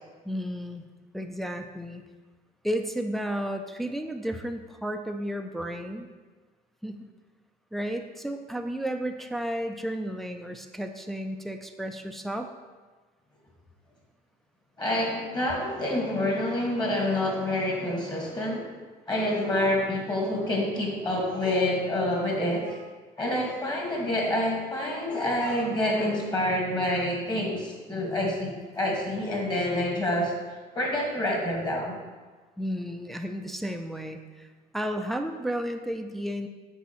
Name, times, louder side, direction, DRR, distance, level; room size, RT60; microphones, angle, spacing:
voice 1, 0.2-0.9 1.1-2.0 2.6-6.1 6.8-7.1 7.7-12.5 32.6-36.5, equal, ahead, 5 dB, 0.4 m, -33 dB
voice 2, 14.8-18.7 19.1-22.8 23.2-32.0, left 1 dB, 25° left, -1 dB, 1.6 m, -27 dB
7.2 x 4.6 x 3.0 m, 1.3 s
cardioid pair, 110°, 17 cm